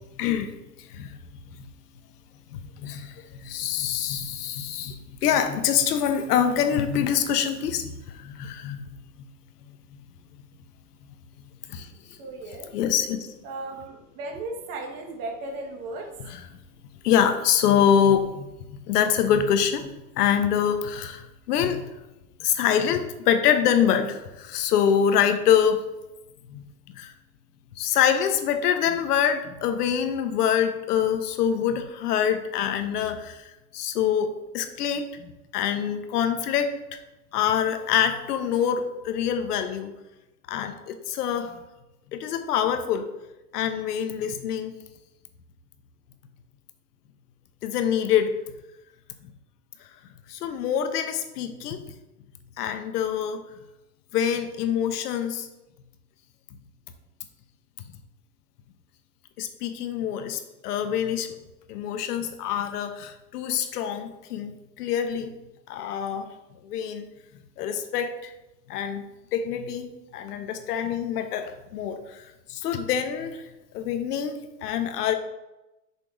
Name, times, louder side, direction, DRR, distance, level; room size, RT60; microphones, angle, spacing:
voice 1, 0.1-0.5 0.8-1.2 1.6-1.7 2.5-9.3 9.6-10.0 10.3-10.4 11.4-11.9 12.7-13.3 16.3-16.4 17.0-21.8 22.4-25.8 26.5-26.6 26.9-27.1 27.8-36.7 37.3-39.9 40.5-41.6 42.1-43.1 43.5-44.7 47.6-48.3 50.3-51.8 52.6-53.4 54.1-55.5 59.4-61.4 61.7-65.3 65.7-66.3 66.6-67.1 67.6-68.3 68.7-69.0 69.3-73.4 73.7-75.1, left 8 dB, 80° left, 8 dB, 1.0 m, -25 dB
voice 2, 12.2-12.7 13.4-16.1, right 2 dB, 45° right, 1 dB, 1.6 m, -36 dB
6.8 x 3.6 x 4.7 m, 0.98 s
supercardioid pair, 130°, 46 cm